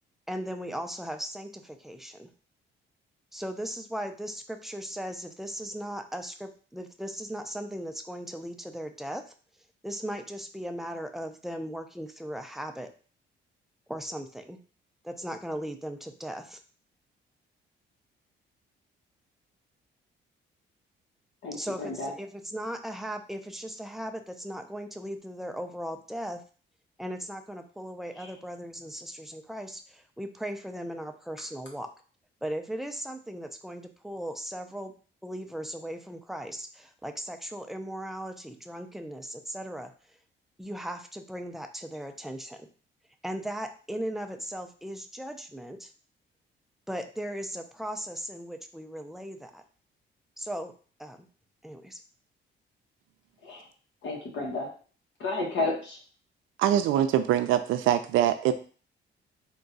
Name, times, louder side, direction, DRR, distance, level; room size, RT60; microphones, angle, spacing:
voice 1, 0.3-2.3 3.3-9.2 9.8-12.9 13.9-14.6 15.0-16.6 21.5-26.4 27.0-31.9 32.4-34.9 35.2-39.9 40.6-42.7 43.2-45.9 46.9-49.6 50.4-50.7 51.0-51.3 51.6-52.0, equal, ahead, 6 dB, 0.5 m, -37 dB
voice 2, 21.4-22.1 28.2-28.3 53.4-53.6 54.0-54.7 55.2-56.0, left 3 dB, 70° left, 0 dB, 1.3 m, -32 dB
voice 3, 56.6-58.5, right 11 dB, 90° right, 9 dB, 0.5 m, -23 dB
3.7 x 2.3 x 4.0 m, 0.39 s
cardioid pair, 90°, 20 cm